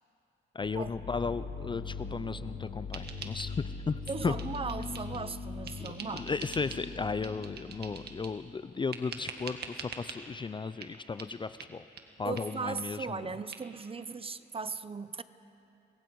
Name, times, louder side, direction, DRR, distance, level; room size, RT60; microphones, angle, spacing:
voice 1, 0.5-3.5 3.9-4.4 5.8-11.8 12.2-13.4, left 4 dB, 25° left, 13 dB, 0.5 m, -35 dB
sound 1, 0.6-8.3, left 4 dB, 60° left, 3.0 m, -41 dB
sound 2, 2.9-3.8 4.1-5.3 5.7-6.9 7.2-8.4 8.9-10.2 10.8-10.9 11.2-11.3 11.6-11.7 12.0-12.1 12.4-12.5 12.8-12.9 13.1-13.2 13.5-13.6, right 5 dB, 55° right, 1.9 m, -45 dB
voice 2, 4.1-6.3 12.2-15.2, right 4 dB, 30° right, 14 dB, 0.7 m, -37 dB
28.0 x 21.5 x 4.7 m, 2.9 s
cardioid pair, 90°, 20 cm